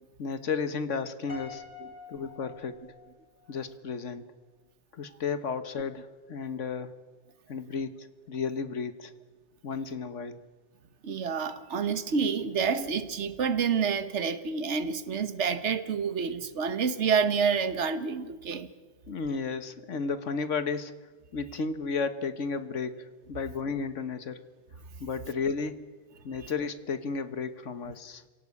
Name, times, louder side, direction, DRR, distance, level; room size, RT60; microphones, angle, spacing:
voice 1, 0.2-1.6 2.1-2.8 3.5-4.2 4.9-7.0 7.5-9.1 9.6-10.4 19.1-20.9 21.3-24.4 25.0-25.8 26.2-28.2, left 5 dB, 85° left, 1.6 m, -33 dB
Piano, 1.3-3.5, left 6 dB, 70° left, 4.6 m, -46 dB
voice 2, 11.0-18.7, right 6 dB, 70° right, 1.5 m, -28 dB
26.0 x 17.5 x 8.4 m
omnidirectional pair, 1.2 m